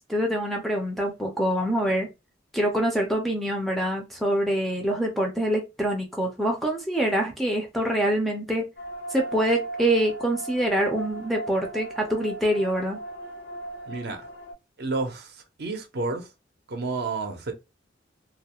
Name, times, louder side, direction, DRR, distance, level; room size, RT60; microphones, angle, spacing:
voice 1, 0.1-2.1 2.5-8.7 9.1-13.0, right 1 dB, ahead, 0.4 m, -25 dB
sound 1, 8.8-14.5, right 1 dB, 75° left, 0.7 m, -37 dB
voice 2, 13.9-14.2 14.8-16.3 16.7-17.5, right 3 dB, 55° right, 0.5 m, -30 dB
2.3 x 2.1 x 2.8 m
head